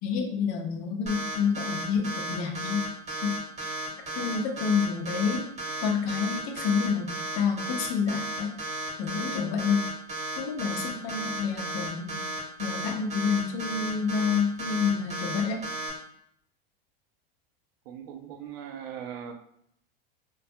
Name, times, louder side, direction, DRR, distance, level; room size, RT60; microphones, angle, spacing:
voice 1, 0.0-2.8 3.1-3.7 4.2-5.5 5.8-8.5 9.0-9.9 10.4-12.2 12.6-15.6, left 6 dB, 50° left, 3 dB, 0.6 m, -28 dB
sound 1, 1.1-15.9, right 2 dB, 25° right, 0.9 m, -34 dB
voice 2, 4.2-4.5 17.9-19.3, right 8 dB, 75° right, 5 dB, 0.5 m, -40 dB
2.3 x 2.2 x 2.6 m, 0.71 s
hypercardioid pair, 110°, 30 cm